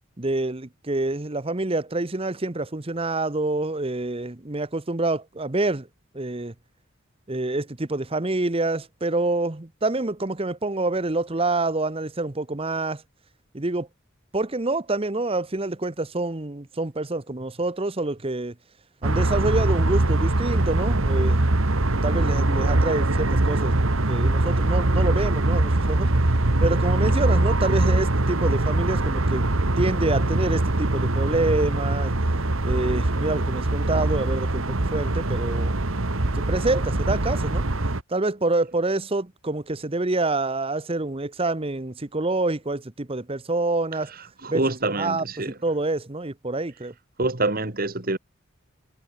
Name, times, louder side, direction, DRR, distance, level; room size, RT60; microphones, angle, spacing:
voice 1, 0.2-5.9 6.1-6.5 7.3-13.0 13.5-13.9 14.3-18.5 19.0-21.6 22.0-23.7 24.1-26.1 26.6-29.5 29.8-32.1 32.6-35.8 36.3-37.6 38.1-44.1 44.5-44.6 45.0-45.2 45.6-46.9, right 2 dB, 25° right, 1.0 m, -27 dB
sound 1, 19.0-38.0, right 2 dB, 80° right, 1.7 m, -22 dB
voice 2, 44.4-45.6 47.2-48.2, right 2 dB, 45° right, 2.3 m, -26 dB
head